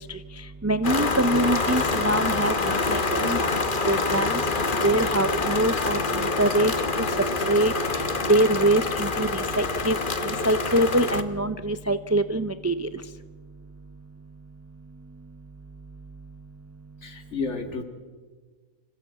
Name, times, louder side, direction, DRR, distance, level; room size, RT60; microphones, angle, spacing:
voice 1, 0.6-3.4 3.9-4.3 4.8-6.0 6.4-6.7 7.4-7.7 8.3-10.0 10.5-12.9, right 1 dB, 25° right, 11 dB, 0.3 m, -23 dB
sound 1, 0.8-11.2, left 3 dB, 40° left, 1.3 m, -26 dB
voice 2, 17.0-17.8, left 4 dB, 55° left, 6 dB, 2.3 m, -31 dB
26.5 x 16.0 x 8.3 m, 1.4 s
omnidirectional pair, 1.4 m